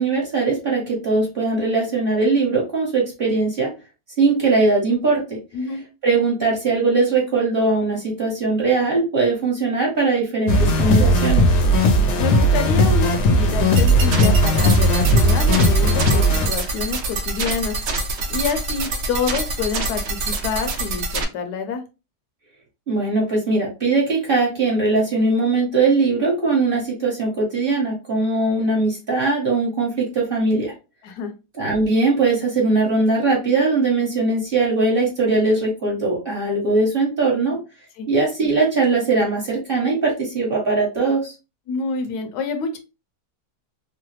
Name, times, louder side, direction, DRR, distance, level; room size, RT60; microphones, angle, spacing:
voice 1, 0.0-3.7 4.2-5.4 6.0-11.4 22.9-30.7 31.5-37.6 38.1-41.3, right 3 dB, 40° right, -3 dB, 1.1 m, -20 dB
sound 1, 10.5-16.5, equal, 60° left, 0.8 m, -17 dB
voice 2, 12.2-17.8 18.3-21.8 31.0-31.3 38.0-38.1 41.7-42.8, left 5 dB, 80° left, 6 dB, 1.1 m, -27 dB
sound 2, 13.8-21.2, right 3 dB, 80° right, 0.6 m, -26 dB
3.1 x 2.0 x 3.1 m, 0.29 s
omnidirectional pair, 1.8 m